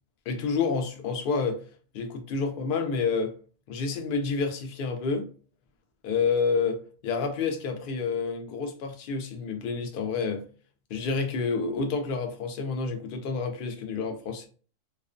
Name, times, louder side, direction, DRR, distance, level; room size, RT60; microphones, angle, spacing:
voice 1, 0.3-1.6 1.9-3.3 3.7-5.3 6.0-10.5 10.9-14.5, left 4 dB, 65° left, 0.5 m, -29 dB
2.4 x 2.1 x 2.4 m
omnidirectional pair, 1.4 m